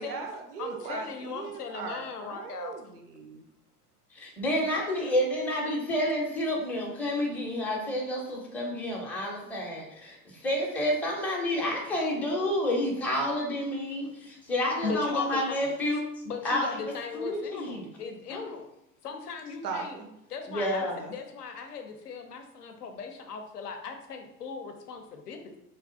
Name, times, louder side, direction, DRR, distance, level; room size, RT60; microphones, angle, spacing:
voice 1, 0.0-3.4 19.6-20.1 20.8-21.2, right 5 dB, 80° right, 4 dB, 0.6 m, -38 dB
voice 2, 0.6-2.7 14.8-15.7 16.3-18.7 19.0-20.0 20.3-25.6, left 5 dB, 80° left, 5 dB, 0.5 m, -38 dB
voice 3, 4.1-16.1 16.4-17.9 18.3-18.4 20.5-21.0, left 1 dB, 5° left, -2 dB, 0.4 m, -29 dB
3.1 x 2.4 x 2.5 m, 0.83 s
figure-of-eight pair, 70°, 46 cm